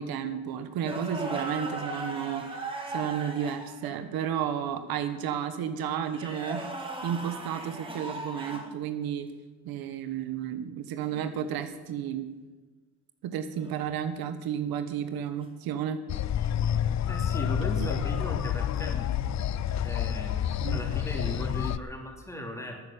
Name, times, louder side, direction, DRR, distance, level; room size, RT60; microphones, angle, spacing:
voice 1, 0.0-6.7 7.0-9.3 9.6-12.3 13.2-16.0 17.8-17.9 20.6-20.8, right 8 dB, 80° right, 9 dB, 1.2 m, -32 dB
sound 1, 0.8-4.0 6.0-8.7 11.1-11.3 13.5-13.9 16.8-17.0 19.0-19.4, right 2 dB, 15° right, 2.4 m, -38 dB
sound 2, 16.1-21.8, left 10 dB, 50° left, 0.6 m, -29 dB
voice 2, 17.1-19.1 19.8-22.8, equal, 10° left, 1 dB, 3.3 m, -37 dB
12.5 x 8.8 x 8.6 m, 1.3 s
cardioid pair, 90°, 36 cm